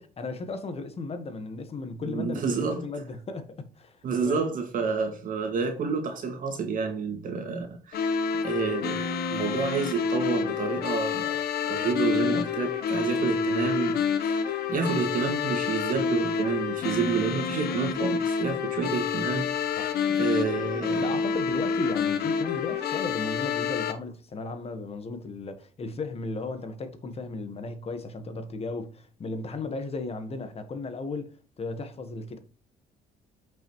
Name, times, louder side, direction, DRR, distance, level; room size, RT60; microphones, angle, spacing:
voice 1, 0.0-4.4 19.8-19.9 21.0-32.4, left 3 dB, 35° left, 1.5 m, -35 dB
voice 2, 2.1-2.9 4.0-8.2 8.4-19.9 20.2-21.2, right 5 dB, 55° right, 2.2 m, -29 dB
sound 1, 7.9-23.9, left 6 dB, 65° left, 1.3 m, -28 dB
8.2 x 5.9 x 3.2 m
cardioid pair, 110°, 17 cm